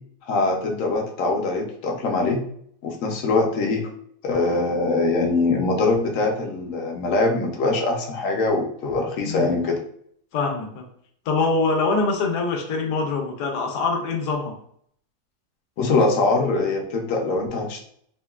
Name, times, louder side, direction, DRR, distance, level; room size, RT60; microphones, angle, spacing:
voice 1, 0.3-2.4 2.8-3.9 4.2-9.8 15.8-17.8, left 3 dB, 65° left, 1 dB, 0.9 m, -23 dB
voice 2, 10.3-10.8 11.3-14.6, left 3 dB, 90° left, 2 dB, 1.2 m, -24 dB
3.7 x 2.1 x 2.3 m, 0.66 s
omnidirectional pair, 1.7 m